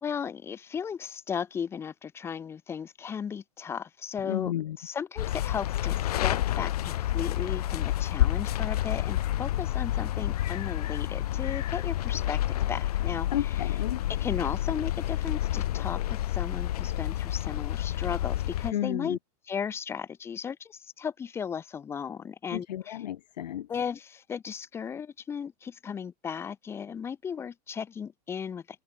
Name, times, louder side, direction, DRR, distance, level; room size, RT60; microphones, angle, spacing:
voice 1, 0.0-13.7 14.1-19.2 19.5-23.0 23.7-28.6, left 7 dB, 10° left, 2.9 m, -36 dB
voice 2, 4.2-4.8 13.3-14.0 18.7-19.2 22.5-23.7, left 12 dB, 80° left, 4.5 m, -32 dB
sound 1, 5.2-18.7, left 13 dB, 65° left, 7.1 m, -29 dB
supercardioid pair, 180°, 21 cm